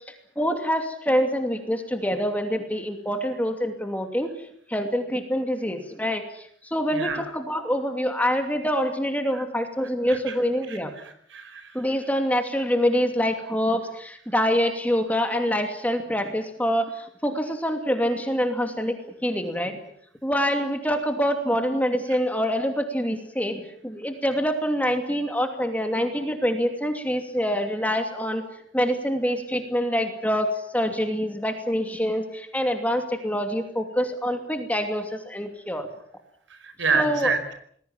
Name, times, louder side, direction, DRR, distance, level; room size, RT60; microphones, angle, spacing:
voice 1, 0.4-4.3 4.7-10.9 11.7-19.8 20.2-28.4 28.7-35.9 36.9-37.3, equal, 10° left, 5 dB, 2.7 m, -25 dB
voice 2, 6.9-7.2 8.3-8.4 9.3-9.4 9.8-10.4 10.7-11.9 36.5-37.4, right 4 dB, 80° right, 10 dB, 5.0 m, -29 dB
28.0 x 20.5 x 7.4 m, 0.64 s
head